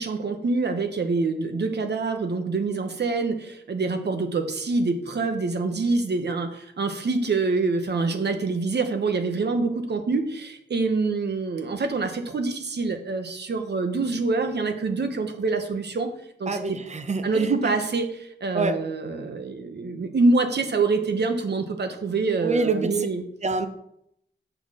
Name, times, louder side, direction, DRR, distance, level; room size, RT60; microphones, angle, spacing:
voice 1, 0.0-16.1 16.4-16.8 17.2-23.2, right 3 dB, 60° right, 6 dB, 1.0 m, -26 dB
voice 2, 16.5-17.5 18.5-18.8 22.4-23.1 23.4-23.7, right 3 dB, 35° right, 9 dB, 0.7 m, -26 dB
6.9 x 6.1 x 4.2 m, 0.73 s
wide cardioid pair, 105°, 19 cm